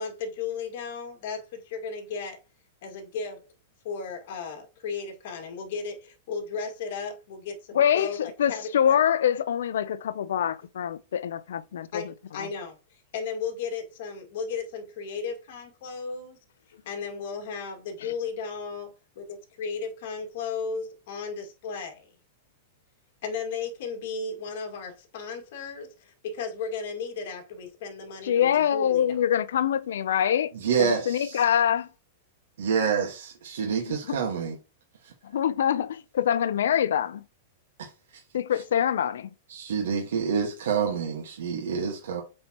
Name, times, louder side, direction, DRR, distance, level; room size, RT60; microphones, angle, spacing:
voice 1, 0.0-2.4 2.8-3.4 3.8-8.9 11.9-12.8 13.1-16.4 16.9-22.1 23.2-29.1, left 5 dB, 55° left, 2.1 m, -35 dB
voice 2, 7.7-12.5 18.0-18.1 28.2-30.5 30.8-31.9 33.9-34.2 35.2-37.2 38.3-39.3, left 9 dB, 85° left, 0.5 m, -25 dB
voice 3, 30.6-31.4 32.6-34.6 35.0-35.1 37.8-37.9 39.5-42.2, right 6 dB, 85° right, 1.5 m, -27 dB
7.8 x 4.3 x 2.9 m
supercardioid pair, 160°, 0 cm